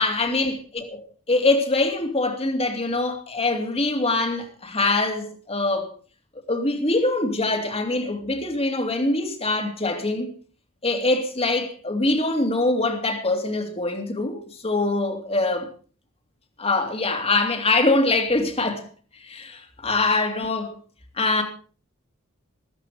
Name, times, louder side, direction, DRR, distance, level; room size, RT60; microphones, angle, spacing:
voice 1, 0.0-5.9 6.5-10.3 10.8-15.7 16.6-18.9 19.2-20.8 21.2-21.4, left 2 dB, 30° left, 2.7 m, -23 dB
14.5 x 13.5 x 5.1 m
head